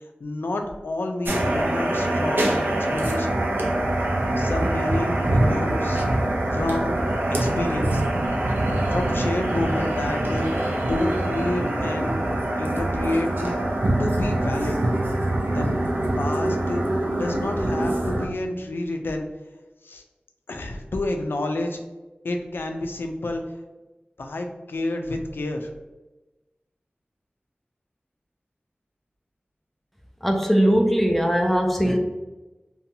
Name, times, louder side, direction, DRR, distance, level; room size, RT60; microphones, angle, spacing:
voice 1, 0.2-3.4 4.4-6.1 6.5-7.0 7.4-8.0 8.9-10.5 10.8-12.1 12.6-13.5 14.0-14.8 15.5-15.7 16.2-16.8 17.1-19.3 19.8-20.0 20.5-21.8 22.2-23.4 24.2-25.7, left 2 dB, 90° left, 4 dB, 0.3 m, -29 dB
sound 1, 1.2-18.3, right 1 dB, 75° right, 0.5 m, -24 dB
voice 2, 30.2-32.0, equal, 5° left, 2 dB, 0.3 m, -20 dB
2.6 x 2.2 x 2.7 m, 1.1 s
wide cardioid pair, 60°, 4 cm